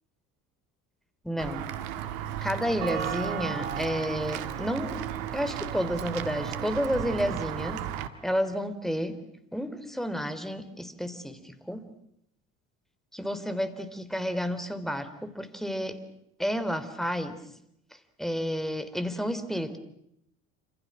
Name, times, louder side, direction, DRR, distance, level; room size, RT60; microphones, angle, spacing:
voice 1, 1.2-1.7 2.4-5.0 5.3-7.9 8.2-9.2 9.5-11.9 13.1-16.0 16.4-17.4 18.2-19.8, equal, ahead, 11 dB, 3.5 m, -31 dB
Walk footsteps / Bell, 1.4-8.1, right 10 dB, 75° right, 1.9 m, -34 dB
28.5 x 27.0 x 6.3 m, 0.75 s
hypercardioid pair, 60°, 40 cm